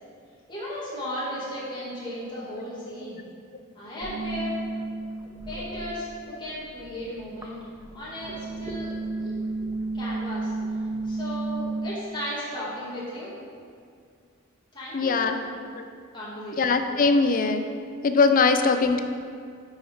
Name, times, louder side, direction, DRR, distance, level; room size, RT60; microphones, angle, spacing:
voice 1, 0.5-3.2 3.8-4.6 5.5-7.6 7.9-8.9 9.2-9.3 9.9-10.5 11.0-13.3 14.7-15.6 16.1-16.6, equal, 20° left, -9 dB, 2.2 m, -35 dB
sound 1, 4.0-6.3 6.6-11.8, right 3 dB, 10° right, 0.7 m, -32 dB
voice 2, 14.9-15.4 15.7-15.8 16.6-17.7 18.0-19.0, left 4 dB, 40° left, 7 dB, 0.5 m, -21 dB
8.9 x 5.6 x 4.6 m, 2.2 s
head